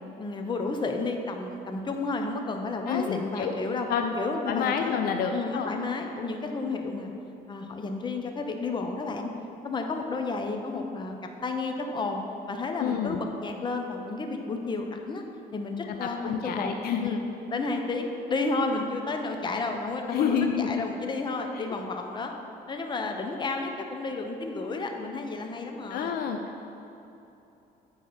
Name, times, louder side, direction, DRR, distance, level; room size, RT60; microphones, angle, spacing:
voice 1, 0.2-3.9 4.2-7.1 7.5-9.3 9.6-11.1 11.4-12.2 12.5-15.2 15.5-16.7 17.0-17.2 17.5-22.3 22.7-26.2, left 3 dB, 25° left, 4 dB, 0.8 m, -31 dB
voice 2, 2.9-3.5 3.9-4.1 4.5-5.7 12.8-13.2 15.8-17.1 20.1-20.8 21.5-21.6 25.9-26.4, left 7 dB, 65° left, 5 dB, 0.5 m, -28 dB
8.5 x 4.5 x 5.5 m, 2.9 s
cardioid pair, 110°, 17 cm